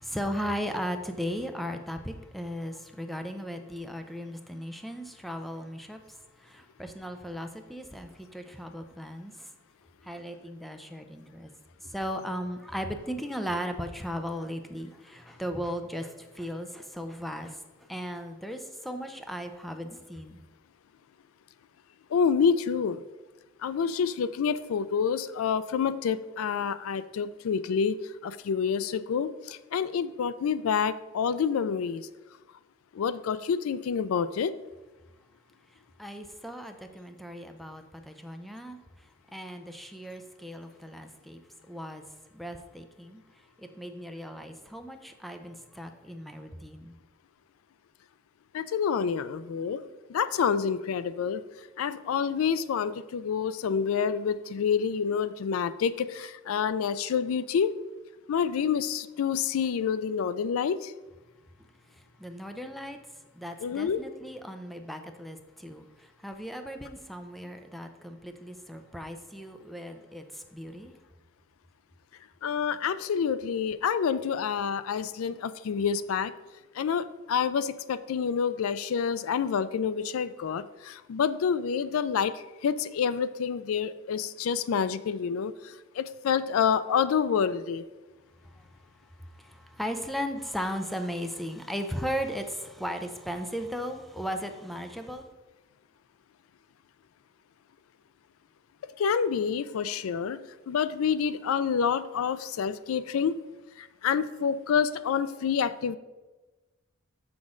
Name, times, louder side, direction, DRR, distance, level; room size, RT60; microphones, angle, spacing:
voice 1, 0.0-9.5 10.0-11.5 11.8-20.4 35.7-41.4 41.7-42.0 42.3-47.0 61.6-63.0 63.3-70.9 88.4-95.3, equal, ahead, 6 dB, 0.5 m, -37 dB
voice 2, 22.1-23.0 23.6-28.0 28.2-32.0 32.9-34.5 48.5-49.8 50.1-51.4 51.8-57.7 58.3-60.9 63.6-64.0 72.4-76.3 76.7-85.5 86.0-87.8 99.0-100.4 100.7-103.4 103.8-106.0, left 6 dB, 80° left, 14 dB, 0.4 m, -28 dB
6.2 x 6.0 x 3.7 m, 1.1 s
head